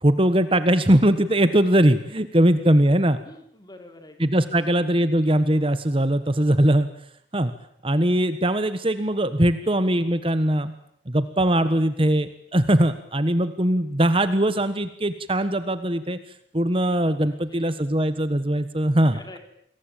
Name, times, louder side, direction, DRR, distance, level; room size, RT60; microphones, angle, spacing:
voice 1, 0.0-3.2 4.2-6.9 7.3-7.5 7.8-10.7 11.1-16.2 16.5-19.2, right 1 dB, 30° right, 11 dB, 1.3 m, -21 dB
voice 2, 3.2-5.1 9.6-9.8 17.2-17.8 19.1-19.4, left 1 dB, 20° left, 5 dB, 4.5 m, -47 dB
29.0 x 22.0 x 9.1 m, 0.71 s
head